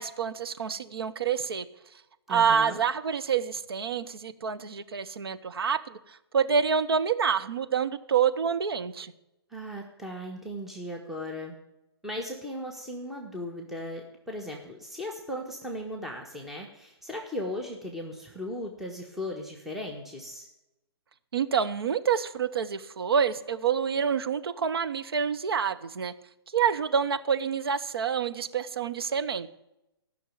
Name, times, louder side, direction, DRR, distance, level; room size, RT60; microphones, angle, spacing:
voice 1, 0.0-1.7 2.3-9.1 21.3-26.1 26.5-29.5, right 7 dB, 65° right, 11 dB, 0.9 m, -27 dB
voice 2, 2.3-2.8 9.5-11.6 12.0-20.5, left 1 dB, ahead, 0 dB, 1.4 m, -37 dB
14.5 x 6.4 x 8.9 m, 0.91 s
figure-of-eight pair, 125°, 14 cm